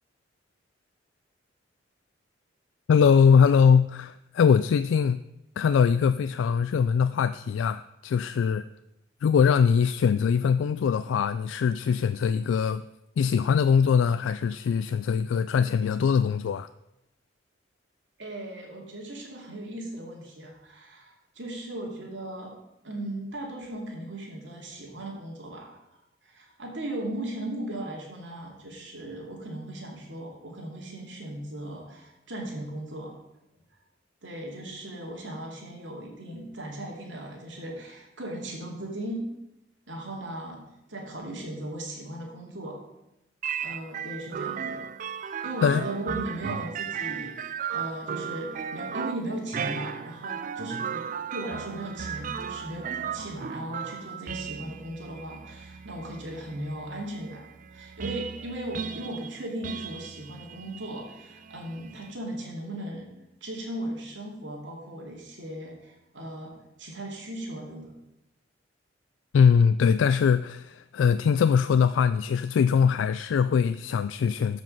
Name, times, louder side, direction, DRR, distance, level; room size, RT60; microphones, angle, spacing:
voice 1, 2.9-5.2 5.6-8.6 9.2-12.8 13.2-16.7 45.6-45.8 69.3-74.6, left 6 dB, 85° left, 0.3 m, -22 dB
voice 2, 18.2-22.5 22.8-25.8 26.2-33.2 34.2-39.3 39.9-40.6 40.9-42.8 43.6-44.8 45.4-63.1 63.4-67.9, right 1 dB, 80° right, 2.4 m, -37 dB
sound 1, 43.4-62.1, right 7 dB, 45° right, 0.4 m, -36 dB
13.0 x 5.3 x 5.4 m
head